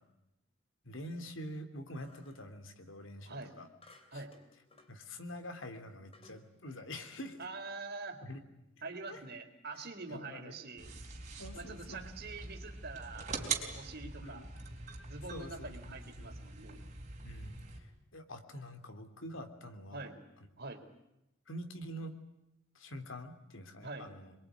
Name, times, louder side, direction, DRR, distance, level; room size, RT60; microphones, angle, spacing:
voice 1, 0.8-3.7 4.1-4.2 4.9-7.4 8.2-8.4 9.1-9.2 10.1-10.6 11.4-12.1 14.2-14.7 15.3-15.9 16.2-16.3 17.2-20.1 21.5-22.1 22.7-24.4, equal, 75° left, 7 dB, 3.0 m, -46 dB
sound 1, 2.0-2.5 3.8-5.0 5.5-5.6 6.1-6.5, left 2 dB, 30° left, 3.4 m, -61 dB
voice 2, 7.4-8.2 8.8-10.9 11.5-14.5 15.0-16.8 19.9-20.2 20.6-20.8 23.8-24.1, right 3 dB, 55° right, 5 dB, 3.7 m, -45 dB
sound 2, 10.8-17.8, right 5 dB, 35° right, 4.3 m, -43 dB
27.0 x 22.5 x 9.4 m, 0.88 s
head